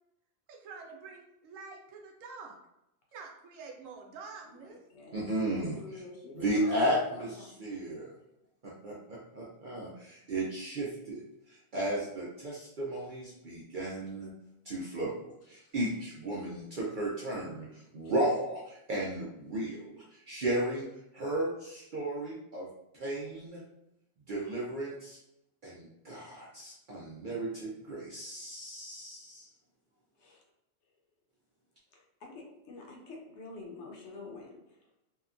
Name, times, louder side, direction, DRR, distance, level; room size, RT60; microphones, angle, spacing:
voice 1, 0.5-2.6 3.1-4.8, right 4 dB, 85° right, 1 dB, 1.0 m, -47 dB
voice 2, 4.5-6.8 7.0-7.6 15.6-15.7 18.0-18.1 30.2-30.4 31.9-34.8, left 3 dB, 70° left, 0 dB, 0.8 m, -48 dB
voice 3, 5.1-6.0 6.4-8.1 8.6-11.2 11.5-14.3 14.7-20.9 21.1-22.7 22.9-23.6 24.3-25.2 25.6-29.5, right 1 dB, 60° right, -5 dB, 0.5 m, -34 dB
2.7 x 2.2 x 2.4 m, 0.85 s
omnidirectional pair, 1.3 m